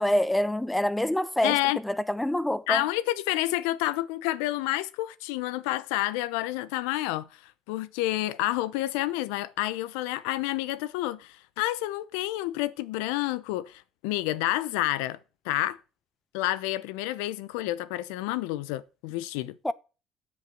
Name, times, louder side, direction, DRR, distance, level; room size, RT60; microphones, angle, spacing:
voice 1, 0.0-1.6 1.8-2.8 19.6-19.7, left 1 dB, 10° left, 0.9 m, -26 dB
voice 2, 1.4-1.8 2.7-15.2 15.4-15.8 16.3-19.6, left 16 dB, 85° left, 0.6 m, -29 dB
7.9 x 7.1 x 7.7 m
hypercardioid pair, 60°, 0 cm